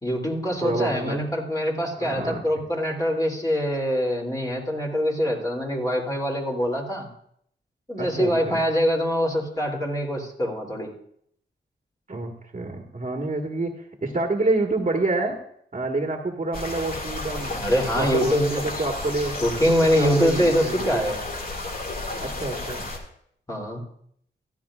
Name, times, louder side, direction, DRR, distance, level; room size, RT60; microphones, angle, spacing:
voice 1, 0.0-7.1 7.9-10.9 17.6-18.7 19.4-21.2 23.5-23.8, equal, 20° left, -1 dB, 3.1 m, -24 dB
voice 2, 0.6-1.2 2.0-2.4 8.0-8.6 12.1-15.4 15.7-17.6 18.0-19.4 20.0-21.1 22.2-22.8, right 2 dB, 40° right, 2 dB, 1.7 m, -28 dB
sound 1, 16.5-23.0, left 2 dB, 50° left, 2.3 m, -32 dB
15.5 x 12.0 x 2.5 m, 0.67 s
cardioid pair, 55°, 19 cm